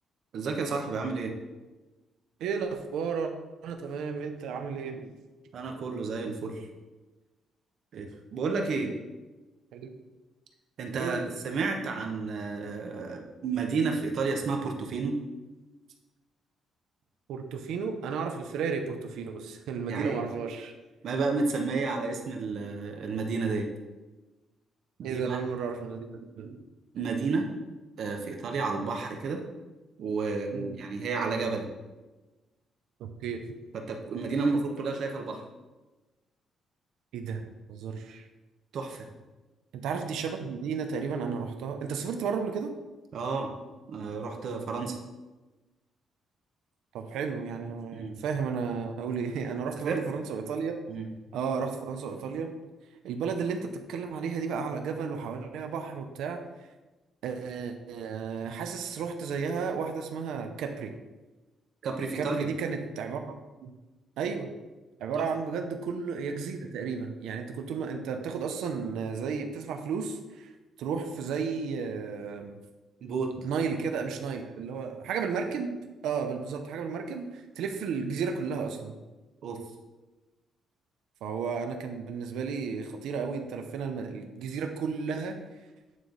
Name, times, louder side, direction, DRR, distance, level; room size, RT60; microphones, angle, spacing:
voice 1, 0.3-1.3 5.5-6.7 7.9-8.9 10.8-15.1 19.9-20.2 21.0-23.7 25.0-25.4 26.9-27.5 28.0-29.4 30.0-31.7 33.7-35.4 38.7-39.1 43.1-43.5 43.9-45.0 47.9-48.2 49.8-50.0 50.9-51.1 61.8-62.5 65.1-65.2 73.0-73.4 79.4-79.6, right 4 dB, 65° right, 2 dB, 0.9 m, -31 dB
voice 2, 2.4-3.3 3.6-5.1 9.7-10.0 11.0-11.3 17.3-20.7 25.0-26.6 30.5-30.8 33.0-33.4 37.1-37.4 37.7-38.3 39.7-42.7 46.9-50.7 51.3-52.6 53.0-56.4 57.2-60.9 62.1-63.2 63.6-63.7 64.2-64.5 65.0-70.5 70.8-72.6 73.4-79.0 81.2-85.4, right 5 dB, 85° right, 5 dB, 0.6 m, -33 dB
9.2 x 3.2 x 3.9 m, 1.2 s
cardioid pair, 90°, 0 cm